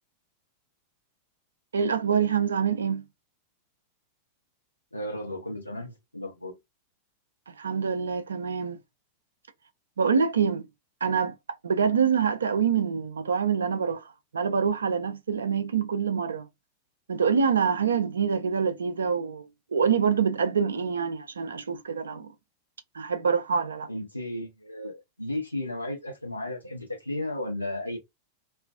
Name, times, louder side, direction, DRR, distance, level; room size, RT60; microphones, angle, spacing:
voice 1, 1.7-3.0 7.6-8.8 10.0-10.7 11.0-11.4 11.6-14.0 14.3-16.5 17.1-19.4 19.7-22.3 22.9-23.9, right 6 dB, 70° right, 0.4 m, -25 dB
voice 2, 4.9-6.5 23.9-28.0, left 1 dB, 85° left, 0.8 m, -34 dB
2.4 x 2.3 x 2.4 m
figure-of-eight pair, 90°, 0 cm